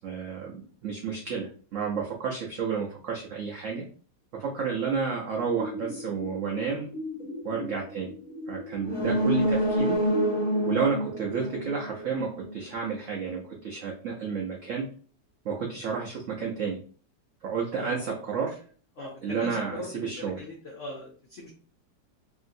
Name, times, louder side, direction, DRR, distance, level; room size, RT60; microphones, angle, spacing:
voice 1, 0.0-3.8 4.3-6.9 7.4-8.1 8.5-10.0 10.7-14.9 15.4-16.8 17.4-18.5 19.0-20.4, right 5 dB, 80° right, -1 dB, 0.7 m, -31 dB
sound 1, 5.3-10.3, left 1 dB, 60° left, 0.9 m, -39 dB
sound 2, 8.8-12.5 12.8-12.9, right 1 dB, 15° left, 1.0 m, -27 dB
voice 2, 17.7-18.3 19.0-21.5, left 1 dB, 75° left, -1 dB, 0.7 m, -40 dB
2.9 x 2.7 x 2.5 m, 0.42 s
omnidirectional pair, 2.0 m